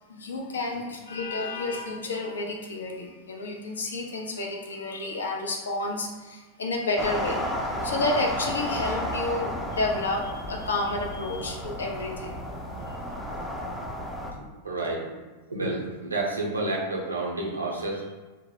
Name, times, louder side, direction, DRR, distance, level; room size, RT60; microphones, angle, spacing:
voice 1, 0.1-7.5 7.8-12.4 12.9-13.0, left 2 dB, 70° left, 0 dB, 0.4 m, -30 dB
sound 1, 7.0-14.3, equal, ahead, 0.4 m, -32 dB
voice 2, 14.6-15.2 15.5-18.1, right 2 dB, 75° right, -2 dB, 0.5 m, -30 dB
2.1 x 2.0 x 3.1 m, 1.2 s
figure-of-eight pair, 90°, 0 cm